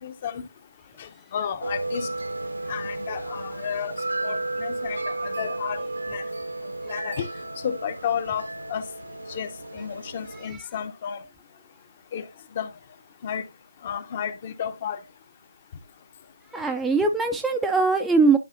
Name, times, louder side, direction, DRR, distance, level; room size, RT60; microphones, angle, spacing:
voice 1, 0.0-0.4 1.0-2.1 2.7-4.0 4.2-5.8 6.1-6.2 6.9-7.3 7.6-8.8 9.3-11.2 12.1-12.3 12.5-12.7 13.2-13.5 13.8-15.0, left 8 dB, 30° left, 0.6 m, -32 dB
sound 1, 1.6-10.5, right 2 dB, 75° right, 0.8 m, -33 dB
voice 2, 16.5-18.4, right 4 dB, 5° right, 0.3 m, -21 dB
10.5 x 4.8 x 2.6 m
figure-of-eight pair, 155°, 0 cm